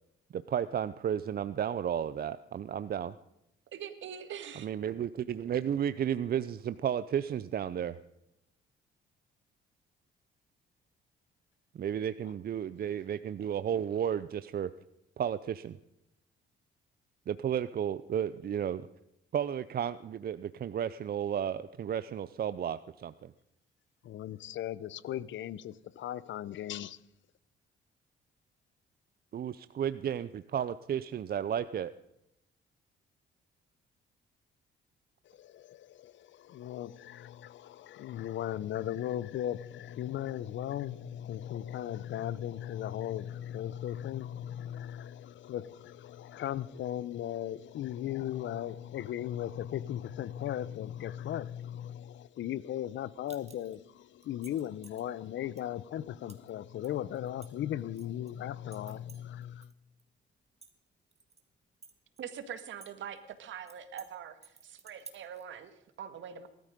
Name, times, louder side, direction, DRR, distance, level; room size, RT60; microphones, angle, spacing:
voice 1, 0.3-3.1 4.6-8.0 11.7-14.7 15.2-15.8 17.3-18.8 19.3-23.3 29.3-31.9, right 9 dB, 50° right, 0.6 m, -33 dB
voice 2, 3.7-4.7 62.2-66.5, right 8 dB, 75° right, 1.9 m, -43 dB
voice 3, 24.0-27.0 35.2-59.7, left 11 dB, 70° left, 0.8 m, -37 dB
sound 1, 53.3-53.8 54.2-55.0 55.6-55.7 56.3-56.5 56.8-58.3 58.7-59.7 60.0-60.1 60.5-61.4 61.8-62.9 63.2-63.3 63.7-64.1 64.4-65.4, right 4 dB, 35° right, 2.5 m, -53 dB
19.5 x 13.5 x 5.2 m
cardioid pair, 90°, 20 cm